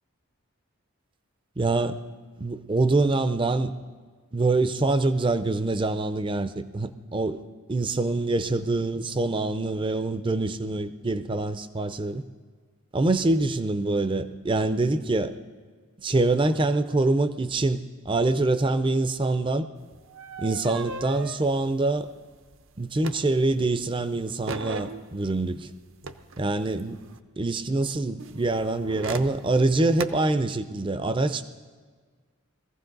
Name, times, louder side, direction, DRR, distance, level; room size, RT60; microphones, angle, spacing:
voice 1, 1.6-2.0 2.4-3.7 4.3-7.4 7.7-12.2 12.9-15.3 16.0-19.7 20.4-22.1 22.8-25.7 26.4-27.0 27.4-31.4, right 2 dB, 20° right, 11 dB, 0.5 m, -25 dB
sound 1, 19.8-23.7 24.0-27.2 28.2-30.0, right 4 dB, 65° right, 0.7 m, -38 dB
21.0 x 15.0 x 3.9 m, 1.5 s
head